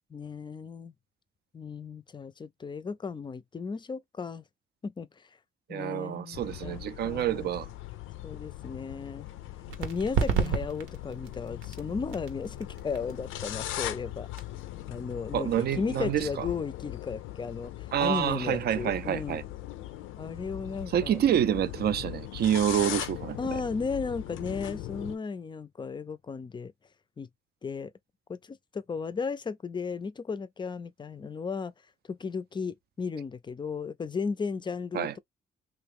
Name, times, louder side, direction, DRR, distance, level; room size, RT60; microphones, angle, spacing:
voice 1, 0.1-0.9 1.5-4.4 4.8-5.3 5.7-7.5 8.2-9.3 9.8-14.3 14.9-19.4 20.2-21.2 23.4-26.7 27.2-27.3 27.6-27.9 28.3-31.7 32.1-35.2, left 5 dB, 25° left, 0.4 m, -35 dB
voice 2, 5.7-7.7 10.3-10.6 15.3-16.5 17.9-19.4 20.9-23.4 34.9-35.1, right 10 dB, 55° right, 0.4 m, -28 dB
sound 1, 6.3-25.2, left 14 dB, 90° left, 0.5 m, -40 dB
sound 2, 9.7-17.0, right 7 dB, 85° right, 0.9 m, -35 dB
3.0 x 2.5 x 3.4 m
cardioid pair, 90°, 20 cm